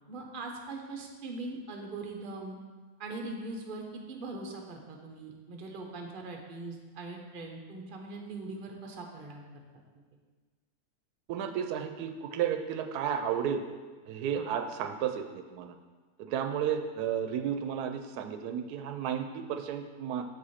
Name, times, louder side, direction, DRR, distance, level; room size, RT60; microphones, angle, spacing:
voice 1, 0.1-2.6 3.0-9.4 14.3-14.5, right 2 dB, 40° right, 1 dB, 0.9 m, -41 dB
voice 2, 11.3-13.6 14.1-15.7 16.3-20.2, right 8 dB, 90° right, 6 dB, 1.1 m, -32 dB
7.0 x 4.9 x 4.2 m, 1.4 s
omnidirectional pair, 1.6 m